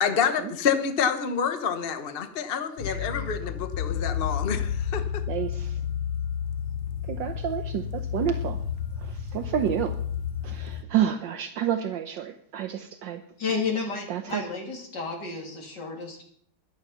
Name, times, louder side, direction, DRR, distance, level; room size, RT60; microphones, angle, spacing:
voice 1, 0.0-5.2, left 7 dB, 40° left, 8 dB, 1.0 m, -27 dB
sound 1, 2.8-10.8, left 8 dB, 75° left, 1.8 m, -31 dB
voice 2, 2.9-3.2 5.3-5.8 7.1-8.6 9.0-10.0 10.4-13.2 14.1-14.4, right 10 dB, 70° right, 8 dB, 1.4 m, -29 dB
voice 3, 13.4-16.2, left 4 dB, 55° left, 0 dB, 3.7 m, -31 dB
13.5 x 11.5 x 5.7 m, 0.63 s
omnidirectional pair, 2.2 m